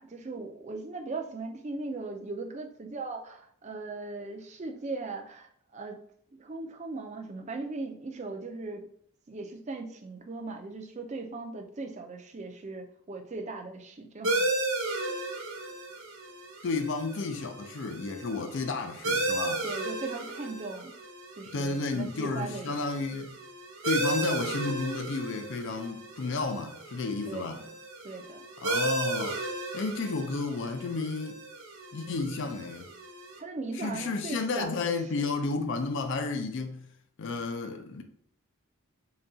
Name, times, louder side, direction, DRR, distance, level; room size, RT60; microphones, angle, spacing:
voice 1, 0.0-6.0 6.3-8.9 9.3-14.5 19.6-20.9 21.4-22.9 27.3-27.7 28.0-28.4 33.4-35.3, right 3 dB, 30° right, 0.4 m, -39 dB
sound 1, 14.2-33.4, right 2 dB, 65° right, 0.7 m, -35 dB
voice 2, 16.6-19.6 21.5-23.4 23.8-27.6 28.6-29.4 29.7-31.4 31.9-32.9 33.7-36.9 37.2-38.0, left 3 dB, 55° left, 0.4 m, -32 dB
3.9 x 2.3 x 3.9 m
head